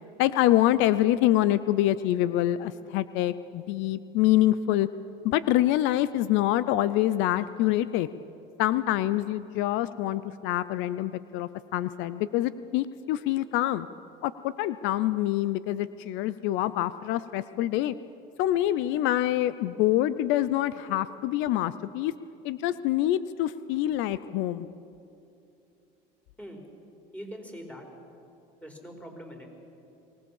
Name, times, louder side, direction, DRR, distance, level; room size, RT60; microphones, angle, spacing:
voice 1, 0.2-4.9 5.2-8.1 8.6-13.9 14.2-17.9 18.4-22.1 22.4-24.7, left 14 dB, 75° left, 15 dB, 0.6 m, -26 dB
voice 2, 27.1-27.8 28.6-29.5, equal, 5° left, 2 dB, 4.7 m, -42 dB
23.5 x 19.0 x 7.2 m, 2.7 s
supercardioid pair, 100°, 20 cm